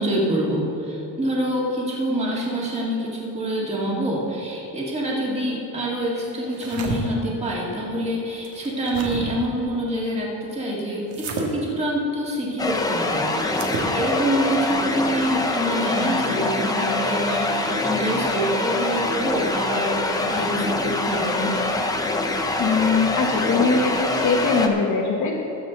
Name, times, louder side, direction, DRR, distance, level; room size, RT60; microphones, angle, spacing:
voice 1, 0.0-21.6, right 1 dB, 15° right, -4 dB, 2.1 m, -26 dB
sound 1, 6.4-7.0 8.4-9.2 11.1-11.5 13.5-13.9, right 5 dB, 55° right, 1.8 m, -31 dB
sound 2, 12.6-24.7, left 2 dB, 10° left, 0.5 m, -24 dB
voice 2, 22.6-25.3, left 4 dB, 40° left, -2 dB, 1.2 m, -21 dB
19.5 x 7.6 x 3.9 m, 2.9 s
cardioid pair, 165°, 46 cm